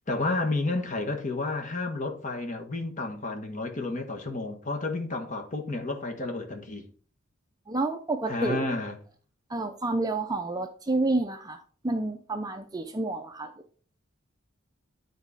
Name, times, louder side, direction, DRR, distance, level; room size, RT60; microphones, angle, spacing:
voice 1, 0.1-6.9 8.3-9.0, left 2 dB, 35° left, 1.3 m, -31 dB
voice 2, 7.7-8.6 9.5-13.5, right 2 dB, 20° right, 0.5 m, -29 dB
9.6 x 4.1 x 4.8 m
head